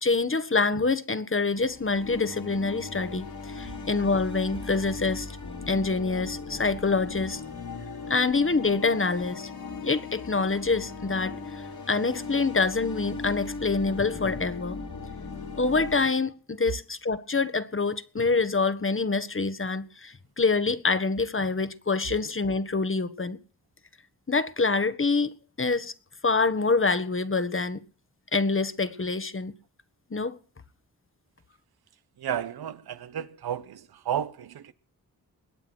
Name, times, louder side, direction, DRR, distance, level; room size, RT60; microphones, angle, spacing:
voice 1, 0.0-5.3 5.7-7.4 8.1-9.5 9.8-14.8 15.6-23.4 24.3-25.9 26.2-27.8 28.3-29.5 30.1-30.4, left 3 dB, 35° left, 1.5 m, -26 dB
sound 1, 1.5-16.1, left 4 dB, 70° left, 4.2 m, -38 dB
voice 2, 32.2-34.7, right 9 dB, 80° right, 1.1 m, -32 dB
21.0 x 8.7 x 6.2 m
cardioid pair, 45°, 37 cm